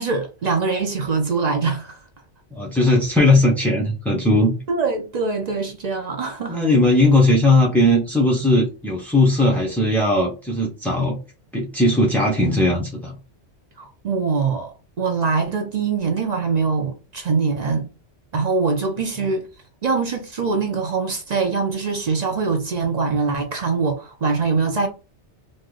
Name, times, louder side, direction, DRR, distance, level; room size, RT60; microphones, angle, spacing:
voice 1, 0.0-2.0 4.7-6.6 13.8-17.8 18.3-19.5 19.8-24.9, right 4 dB, 50° right, 0.5 m, -23 dB
voice 2, 2.5-4.5 6.5-11.2 11.5-13.1, left 1 dB, ahead, 0.3 m, -18 dB
3.1 x 2.1 x 3.7 m
omnidirectional pair, 1.2 m